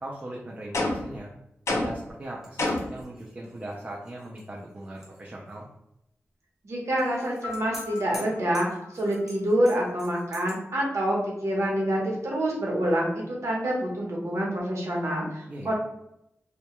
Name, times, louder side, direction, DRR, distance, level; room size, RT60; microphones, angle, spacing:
voice 1, 0.0-1.3 1.7-5.7 15.5-15.7, right 1 dB, 30° right, -3 dB, 0.4 m, -39 dB
sound 1, 0.7-1.2 1.7-2.1 2.6-3.0, left 2 dB, 70° left, 0.4 m, -27 dB
sound 2, 2.4-5.2 5.5-5.6 7.0-10.6, equal, 10° right, 0.7 m, -47 dB
voice 2, 6.6-8.7 8.9-11.2 11.4-15.7, right 1 dB, 70° right, -3 dB, 0.8 m, -27 dB
Piano, 7.4-10.2, left 6 dB, 30° left, 0.7 m, -43 dB
2.2 x 2.1 x 2.9 m, 0.83 s
wide cardioid pair, 125°, 5 cm